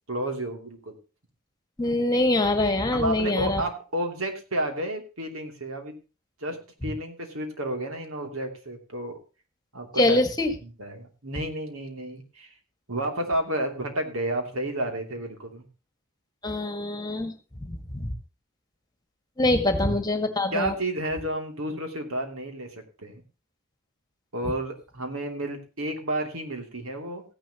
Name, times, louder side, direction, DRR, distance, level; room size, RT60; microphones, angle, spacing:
voice 1, 0.1-0.9 2.9-5.9 6.4-9.2 9.7-10.2 10.6-12.5 12.9-15.7 20.5-23.2 24.3-27.2, right 1 dB, 75° right, 4 dB, 3.0 m, -31 dB
voice 2, 1.8-3.6 10.0-10.5 16.4-17.3 17.6-18.1 19.4-20.7, left 1 dB, 20° left, 7 dB, 1.8 m, -24 dB
15.5 x 11.0 x 3.0 m, 0.33 s
head